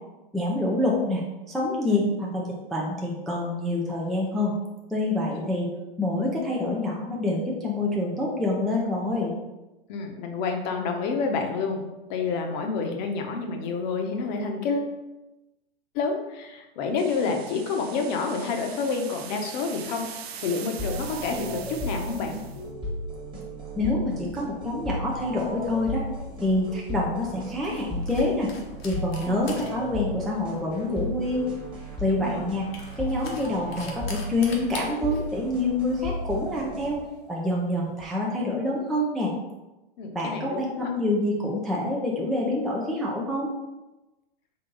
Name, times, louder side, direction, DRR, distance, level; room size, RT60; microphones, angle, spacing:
voice 1, 0.3-1.2 1.5-4.5 4.9-5.7 6.0-9.3 23.8-26.0 26.4-28.5 28.8-31.5 32.0-32.6 33.0-37.0 37.3-39.3 40.1-43.5, left 2 dB, ahead, -4 dB, 0.3 m, -26 dB
voice 2, 9.9-11.8 12.1-15.0 15.9-20.1 20.4-22.4 29.3-29.4 32.0-32.4 40.0-40.9, left 4 dB, 45° left, 3 dB, 0.8 m, -29 dB
sound 1, 17.0-22.6, right 8 dB, 85° right, 0.5 m, -42 dB
sound 2, 20.8-37.3, equal, 15° right, 1.3 m, -35 dB
sound 3, 25.4-38.0, left 3 dB, 80° left, 1.0 m, -46 dB
3.9 x 2.7 x 3.8 m, 1.0 s
hypercardioid pair, 115°, 30 cm